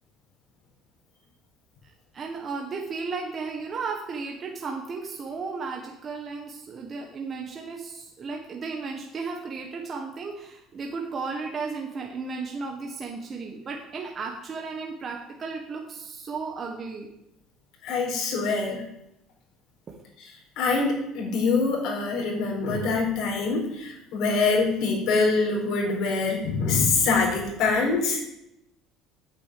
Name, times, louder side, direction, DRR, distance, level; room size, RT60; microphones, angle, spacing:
voice 1, 1.8-17.1 19.9-20.0, right 4 dB, 25° right, 1 dB, 1.3 m, -34 dB
voice 2, 17.8-18.8 20.6-28.2, left 4 dB, 60° left, 0 dB, 4.3 m, -24 dB
9.0 x 8.7 x 8.4 m, 0.84 s
cardioid pair, 170°, 0 cm